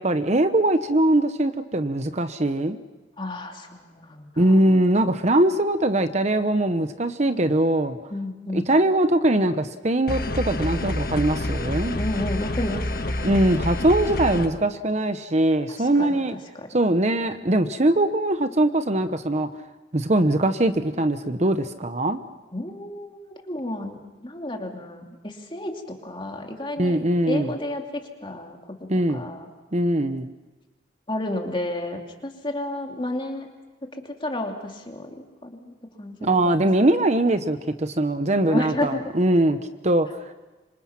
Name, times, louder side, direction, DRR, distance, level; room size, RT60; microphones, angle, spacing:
voice 1, 0.0-2.8 4.4-8.0 8.5-12.0 13.2-16.4 16.7-19.5 19.9-22.2 26.8-27.5 28.9-29.2 29.7-30.3 36.2-39.6 39.8-40.3, right 1 dB, 40° right, 9 dB, 0.9 m, -21 dB
voice 2, 3.2-4.6 8.1-8.7 11.9-13.3 15.8-16.2 16.5-16.7 22.5-24.0 24.2-28.6 29.1-29.5 31.1-33.5 33.9-36.6 38.5-39.1, left 1 dB, 25° left, 2 dB, 2.7 m, -32 dB
sound 1, 10.1-14.5, left 1 dB, 55° left, 1.5 m, -28 dB
26.0 x 26.0 x 5.9 m, 1.2 s
head